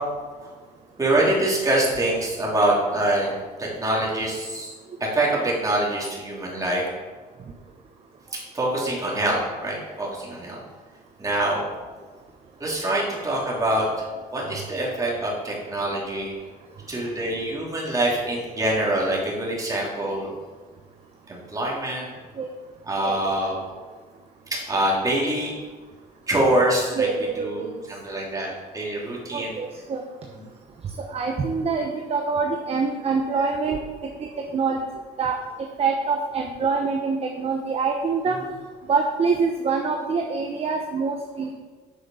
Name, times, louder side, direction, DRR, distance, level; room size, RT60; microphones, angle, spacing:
voice 1, 1.0-3.3 3.6-4.7 5.0-6.8 8.3-10.6 11.2-11.6 12.6-13.9 14.3-16.3 16.9-20.3 21.3-22.1 22.8-23.6 24.5-25.5 26.3-27.1 27.4-29.5 30.3-30.5, right 1 dB, 20° right, -4 dB, 3.3 m, -25 dB
voice 2, 26.9-27.7 29.3-30.0 31.0-33.8 34.2-34.8 35.2-35.4 35.8-38.4 38.9-41.5, right 4 dB, 35° right, 2 dB, 1.0 m, -25 dB
8.6 x 6.4 x 5.7 m, 1.4 s
cardioid pair, 110°, 17 cm